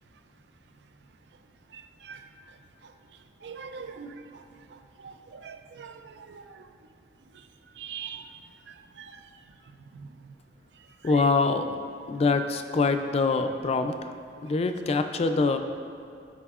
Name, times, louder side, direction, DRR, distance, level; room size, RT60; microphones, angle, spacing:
voice 1, 3.4-4.1 5.0-5.1 5.4-6.4 7.8-8.2 9.0-9.1, right 6 dB, 70° right, 8 dB, 0.4 m, -41 dB
voice 2, 11.0-11.8 12.1-14.1 14.4-15.6, left 3 dB, 35° left, 7 dB, 0.3 m, -24 dB
11.0 x 4.8 x 2.4 m, 2.3 s
head